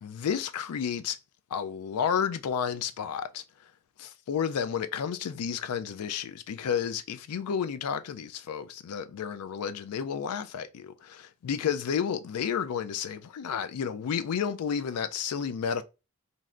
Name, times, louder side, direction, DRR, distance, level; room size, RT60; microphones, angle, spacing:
voice 1, 0.0-1.2 1.5-3.4 4.0-15.8, left 7 dB, 85° left, 0.4 m, -31 dB
3.2 x 2.6 x 2.5 m
head